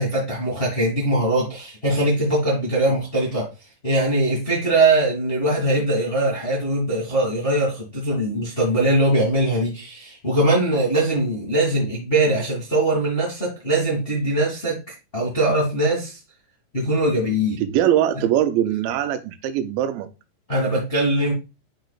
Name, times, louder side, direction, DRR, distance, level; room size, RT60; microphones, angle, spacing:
voice 1, 0.0-3.5 3.8-14.8 15.1-16.2 16.7-17.6 20.5-21.3, right 1 dB, 25° left, -4 dB, 1.2 m, -21 dB
voice 2, 17.6-20.1, right 11 dB, 80° right, 9 dB, 2.2 m, -21 dB
10.0 x 4.0 x 2.3 m, 0.28 s
omnidirectional pair, 4.4 m